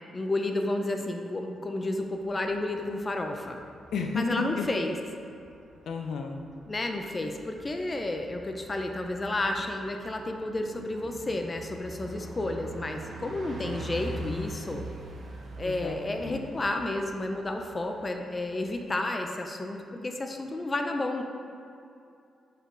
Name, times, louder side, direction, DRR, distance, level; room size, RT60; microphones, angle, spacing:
voice 1, 0.1-3.6 4.1-5.0 6.7-14.8 15.6-21.2, left 2 dB, 30° left, 4 dB, 0.6 m, -31 dB
Bus, 2.0-19.0, right 1 dB, 65° right, 0.9 m, -44 dB
voice 2, 3.9-4.7 5.9-6.4 15.6-16.4, left 4 dB, 75° left, 3 dB, 0.6 m, -32 dB
6.7 x 4.7 x 3.8 m, 2.6 s
cardioid pair, 85°, 0 cm